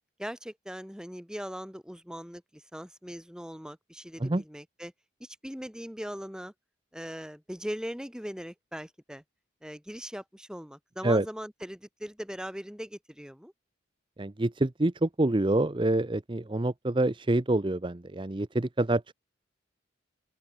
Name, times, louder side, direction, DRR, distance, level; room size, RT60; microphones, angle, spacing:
voice 1, 0.2-4.9 5.2-6.5 6.9-9.2 9.6-13.5, equal, 5° right, 2.4 m, -40 dB
voice 2, 14.2-19.1, right 2 dB, 25° right, 0.6 m, -27 dB
open air
head